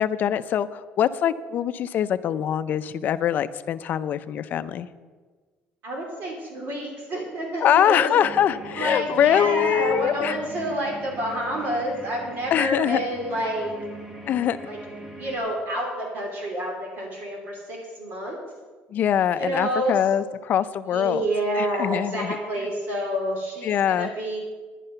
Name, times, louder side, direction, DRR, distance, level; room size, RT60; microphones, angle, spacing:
voice 1, 0.0-4.9 7.6-10.3 12.5-13.0 14.3-14.6 18.9-21.3 21.6-22.4 23.6-24.1, left 10 dB, 45° left, 13 dB, 0.5 m, -23 dB
voice 2, 5.8-8.1 8.7-13.7 14.6-14.8 15.2-18.4 19.3-20.0 20.9-24.4, right 1 dB, 50° right, 0 dB, 2.9 m, -28 dB
sound 1, 8.2-15.4, right 1 dB, 10° right, 1.4 m, -41 dB
11.0 x 10.5 x 5.7 m, 1.4 s
cardioid pair, 150°, 4 cm